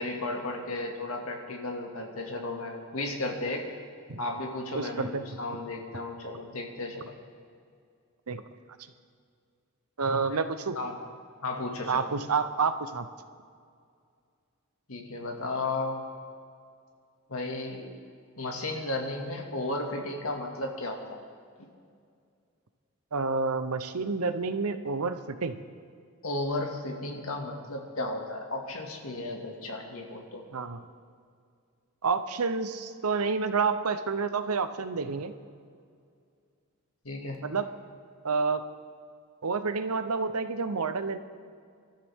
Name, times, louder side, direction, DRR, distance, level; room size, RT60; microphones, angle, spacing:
voice 1, 0.0-3.7 4.2-7.2 10.8-11.0 11.4-12.0 14.9-16.0 17.3-17.9 18.4-21.2 26.2-30.4 37.0-37.4, left 2 dB, 75° left, 1 dB, 2.2 m, -34 dB
voice 2, 4.7-5.2 8.3-8.4 10.0-10.8 11.9-13.1 23.1-25.6 30.5-30.8 32.0-35.3 37.4-37.7 38.2-38.6 39.4-41.2, right 4 dB, 90° right, 10 dB, 0.9 m, -29 dB
25.0 x 13.0 x 3.7 m, 2.2 s
head